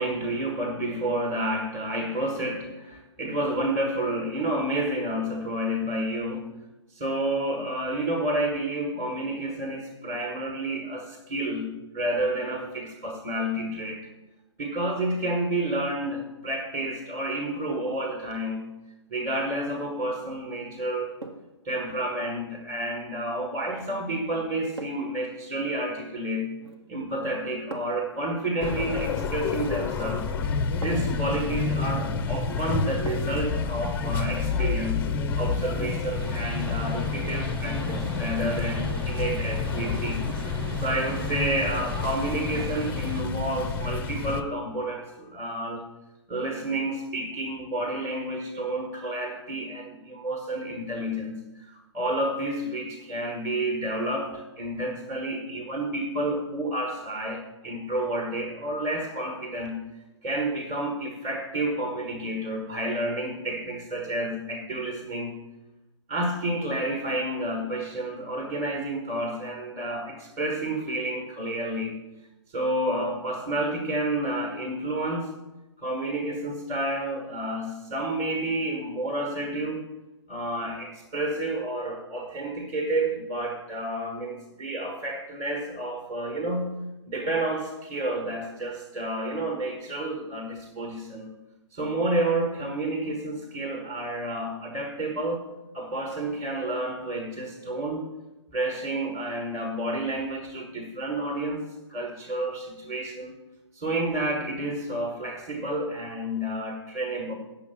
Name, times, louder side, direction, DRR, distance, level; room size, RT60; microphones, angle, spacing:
voice 1, 0.0-6.4 6.9-14.1 14.6-18.7 19.1-21.1 21.6-26.6 26.9-30.3 30.7-35.1 35.4-45.8 46.3-59.8 60.2-65.3 66.1-72.0 72.5-75.3 75.8-79.8 80.3-86.7 87.0-91.3 91.7-95.5 95.7-98.0 98.5-101.6 101.9-103.3 103.7-107.3, right 1 dB, 20° right, 3 dB, 1.4 m, -30 dB
sound 1, 19.6-20.0 21.2-21.6 23.7-23.9 24.8-25.2 26.6-27.0 27.7-28.1 29.8-29.9 30.8-31.3 33.1-33.5 33.9-34.0, right 2 dB, 65° right, 1.4 m, -41 dB
sound 2, 28.6-44.4, left 5 dB, 10° left, 0.5 m, -29 dB
sound 3, 36.2-43.2, right 4 dB, 50° right, 0.9 m, -41 dB
9.3 x 7.0 x 6.9 m, 1.0 s
figure-of-eight pair, 130°, 15 cm